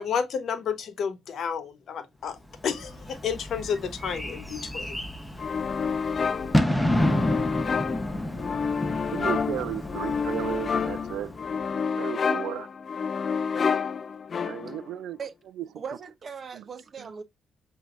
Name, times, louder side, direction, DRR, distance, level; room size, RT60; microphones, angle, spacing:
voice 1, 0.0-2.4 2.6-4.9, left 7 dB, 60° left, 1.0 m, -31 dB
Bird / Fireworks, 2.5-11.7, left 1 dB, 5° left, 0.9 m, -30 dB
sound 1, 5.4-14.9, left 6 dB, 45° left, 0.3 m, -29 dB
voice 2, 9.1-11.3 12.0-12.7 14.4-15.2 15.6-15.7 16.5-16.6 17.0-17.1, right 12 dB, 80° right, 0.4 m, -34 dB
voice 3, 15.8-17.2, right 6 dB, 45° right, 0.7 m, -38 dB
7.7 x 2.8 x 2.4 m
cardioid pair, 90°, 0 cm